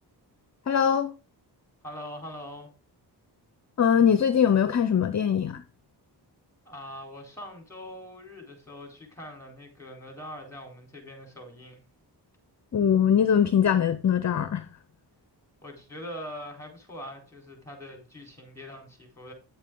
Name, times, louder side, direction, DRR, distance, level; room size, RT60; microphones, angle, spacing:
voice 1, 0.7-1.1 3.8-5.6 12.7-14.7, left 8 dB, 40° left, 0.7 m, -22 dB
voice 2, 1.8-2.7 6.6-11.8 15.6-19.3, equal, 5° left, 4.1 m, -42 dB
10.0 x 7.2 x 3.8 m
wide cardioid pair, 115°, 42 cm